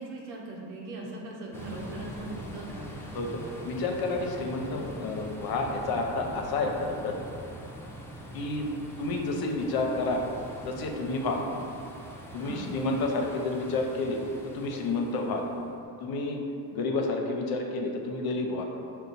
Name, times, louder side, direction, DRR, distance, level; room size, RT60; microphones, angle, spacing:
voice 1, 0.0-2.9 12.4-12.8, right 1 dB, 80° right, -2 dB, 1.0 m, -39 dB
sound 1, 1.5-15.8, right 1 dB, 5° left, 0.5 m, -43 dB
voice 2, 3.1-7.2 8.3-8.7 9.0-10.2 10.6-11.4 12.3-14.2 14.5-15.4 16.0-16.4 16.7-18.7, left 3 dB, 55° left, 2 dB, 0.7 m, -30 dB
5.3 x 2.2 x 4.0 m, 2.7 s
supercardioid pair, 85°, 45 cm